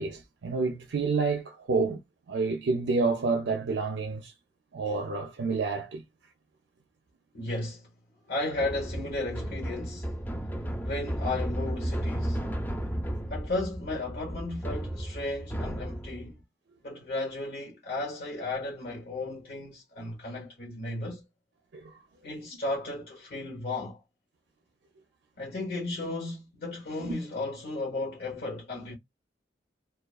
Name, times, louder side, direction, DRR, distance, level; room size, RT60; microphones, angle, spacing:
voice 1, 0.0-2.0 2.3-4.3 4.7-6.0 21.7-22.0 27.0-27.2, right 4 dB, 80° right, 0.5 m, -29 dB
voice 2, 7.3-7.9 8.3-10.1 10.8-12.5 13.3-16.4 16.8-21.2 22.2-24.0 25.4-28.9, left 2 dB, 60° left, 0.9 m, -34 dB
sound 1, 8.6-16.3, equal, 10° left, 0.5 m, -34 dB
2.3 x 2.2 x 2.3 m
head